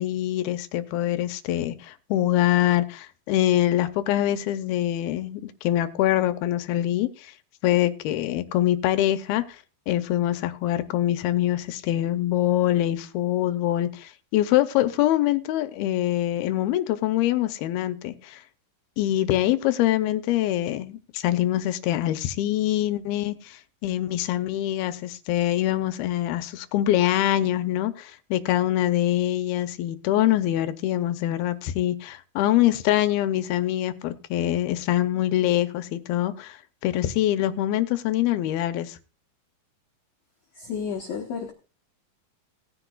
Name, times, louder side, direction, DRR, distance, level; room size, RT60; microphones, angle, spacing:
voice 1, 0.0-7.3 7.6-9.4 9.9-18.4 19.0-36.6 36.8-39.0, left 13 dB, 85° left, 2.6 m, -24 dB
voice 2, 40.6-41.5, left 6 dB, 60° left, 1.9 m, -31 dB
18.0 x 10.0 x 2.3 m
omnidirectional pair, 4.4 m